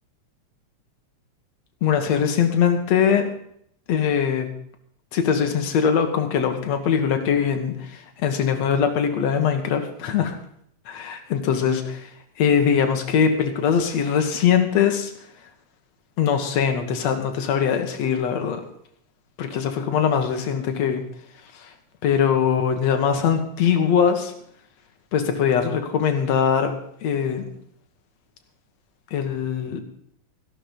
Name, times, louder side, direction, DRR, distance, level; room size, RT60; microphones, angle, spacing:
voice 1, 1.8-3.3 3.9-4.5 5.1-10.4 10.9-12.1 12.4-15.1 16.2-18.6 19.4-21.0 21.6-21.7 22.0-24.3 25.1-26.7 27.0-27.4 29.1-29.8, left 7 dB, 65° left, 6 dB, 2.7 m, -21 dB
15.0 x 11.0 x 5.3 m, 0.67 s
omnidirectional pair, 3.3 m